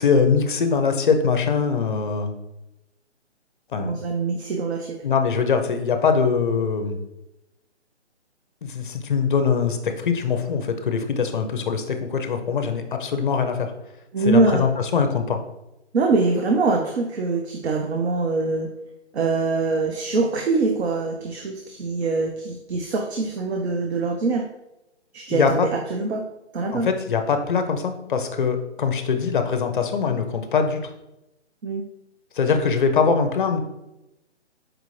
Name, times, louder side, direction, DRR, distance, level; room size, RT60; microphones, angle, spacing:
voice 1, 0.0-2.3 3.7-4.0 5.0-7.0 8.6-13.7 14.2-15.4 25.3-25.7 26.7-30.9 32.3-33.6, left 5 dB, 45° left, 7 dB, 0.5 m, -22 dB
voice 2, 3.8-5.0 14.1-14.7 15.9-18.8 19.1-24.5 25.1-26.3 26.5-26.9 31.6-31.8, right 3 dB, 65° right, 3 dB, 0.5 m, -23 dB
4.8 x 2.4 x 3.1 m, 0.92 s
hypercardioid pair, 155°, 35 cm